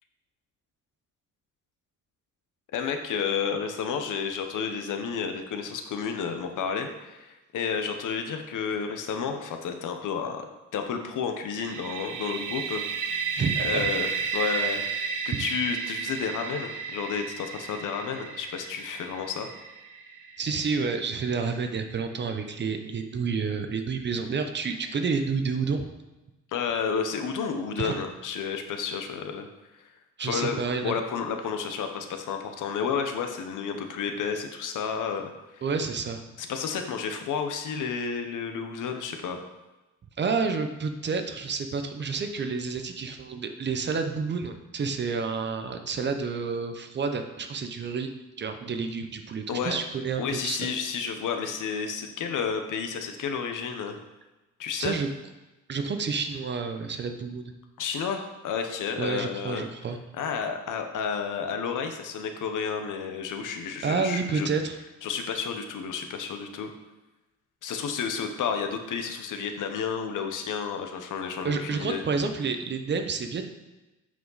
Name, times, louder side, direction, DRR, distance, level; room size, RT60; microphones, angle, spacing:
voice 1, 2.7-10.5 10.7-13.2 13.6-19.5 26.5-29.5 30.2-35.6 36.4-39.4 49.5-49.8 50.2-54.0 54.6-55.0 57.8-59.6 60.2-64.5 65.0-66.7 67.6-72.0, left 6 dB, 75° left, 6 dB, 0.9 m, -31 dB
sound 1, 11.6-21.3, right 6 dB, 80° right, 0.9 m, -33 dB
voice 2, 13.4-13.9 14.3-14.8 15.3-15.5 20.4-25.9 27.8-27.9 30.2-31.0 35.6-36.2 40.2-48.1 48.4-50.6 54.8-55.1 55.7-57.5 59.0-60.0 63.8-64.8 71.4-73.5, right 5 dB, 35° right, 7 dB, 0.6 m, -29 dB
8.3 x 5.0 x 4.0 m, 1.1 s
cardioid pair, 150°, 31 cm